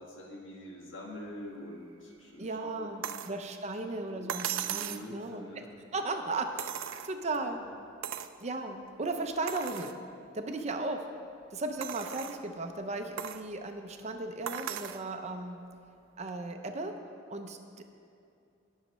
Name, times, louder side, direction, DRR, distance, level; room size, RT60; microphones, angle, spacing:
voice 1, 0.0-3.1 4.1-4.2 4.7-5.7 7.4-7.7, left 1 dB, 70° left, -1 dB, 1.5 m, -45 dB
voice 2, 2.4-5.5 5.9-7.6 8.4-9.9 10.3-11.1 11.5-15.6 16.2-16.9 17.3-17.8, right 2 dB, 35° right, 5 dB, 0.6 m, -36 dB
sound 1, 3.0-3.4 4.3-5.1 6.6-7.4 8.0-8.4 8.9-9.0 9.5-10.0 10.6-10.7 11.8-12.4 13.2-13.5 14.5-15.0 16.3-16.4, right 10 dB, 80° right, 0.4 m, -37 dB
19.0 x 6.4 x 3.1 m, 2.5 s
head